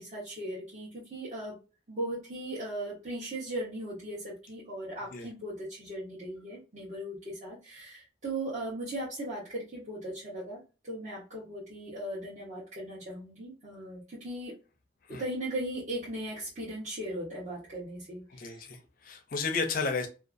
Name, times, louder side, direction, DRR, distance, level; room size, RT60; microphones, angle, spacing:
voice 1, 0.0-1.6 1.9-14.5 15.1-18.6, right 1 dB, 40° right, -8 dB, 0.9 m, -38 dB
voice 2, 18.3-20.1, left 4 dB, 45° left, 5 dB, 0.5 m, -33 dB
2.5 x 2.4 x 2.4 m, 0.31 s
head